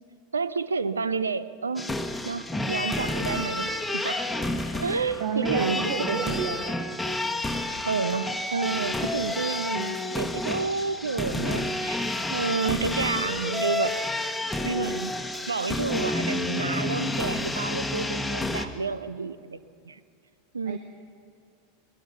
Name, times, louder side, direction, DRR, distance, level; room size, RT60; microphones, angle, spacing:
voice 1, 0.3-1.9 2.2-4.3 4.7-5.8 6.1-6.3 7.8-12.0 12.3-13.9 14.6-15.1 15.5-19.6 19.8-20.0 20.5-20.8, right 4 dB, 75° right, 16 dB, 0.7 m, -30 dB
sound 1, 1.8-18.7, left 2 dB, 5° left, 1.3 m, -30 dB
voice 2, 5.2-6.7 20.7-20.8, right 6 dB, 55° right, 5 dB, 1.3 m, -30 dB
22.5 x 20.0 x 5.9 m, 2.4 s
figure-of-eight pair, 85°, 0 cm